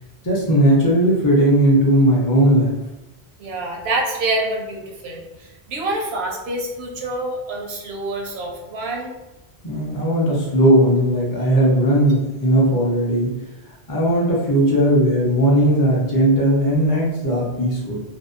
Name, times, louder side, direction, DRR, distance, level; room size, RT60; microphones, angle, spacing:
voice 1, 0.2-2.7 9.6-13.4 13.9-18.0, right 1 dB, 25° left, -4 dB, 0.4 m, -17 dB
voice 2, 3.4-9.2, right 2 dB, 80° right, 0 dB, 0.8 m, -27 dB
2.6 x 2.0 x 2.4 m, 0.99 s
omnidirectional pair, 1.0 m